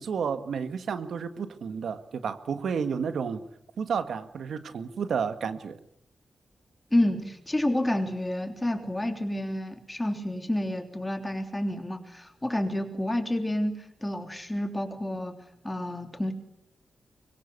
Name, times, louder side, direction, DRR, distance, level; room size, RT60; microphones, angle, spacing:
voice 1, 0.0-3.4 3.8-5.8, right 6 dB, 75° right, 10 dB, 1.6 m, -31 dB
voice 2, 6.9-13.7 14.0-15.4 15.6-16.3, left 1 dB, 10° left, 6 dB, 3.3 m, -29 dB
24.5 x 22.5 x 8.3 m, 0.76 s
wide cardioid pair, 120°, 0 cm